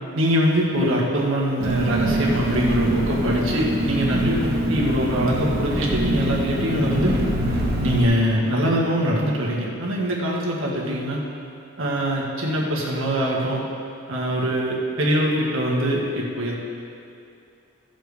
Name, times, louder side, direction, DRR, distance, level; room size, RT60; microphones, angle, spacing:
voice 1, 0.1-7.2 7.8-11.2 11.8-13.6 14.1-16.5, equal, 70° right, -3 dB, 1.9 m, -23 dB
Engine, 1.6-8.0, right 1 dB, 50° right, 1.6 m, -24 dB
16.0 x 7.5 x 3.6 m, 2.5 s
head